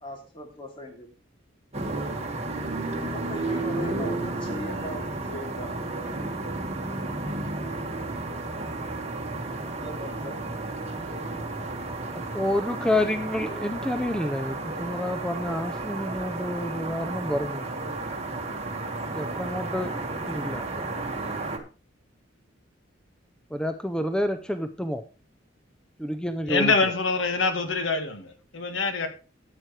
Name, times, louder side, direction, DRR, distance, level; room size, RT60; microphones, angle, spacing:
voice 1, 0.0-1.1 3.0-5.8 9.8-10.4, left 1 dB, 25° left, 2.8 m, -39 dB
sound 1, 1.7-21.6, right 2 dB, 35° right, 1.7 m, -32 dB
voice 2, 12.1-18.0 19.1-20.9 23.5-25.0 26.0-26.7, left 1 dB, 5° left, 0.5 m, -29 dB
voice 3, 26.5-29.1, left 4 dB, 80° left, 1.5 m, -25 dB
13.5 x 9.0 x 3.3 m
head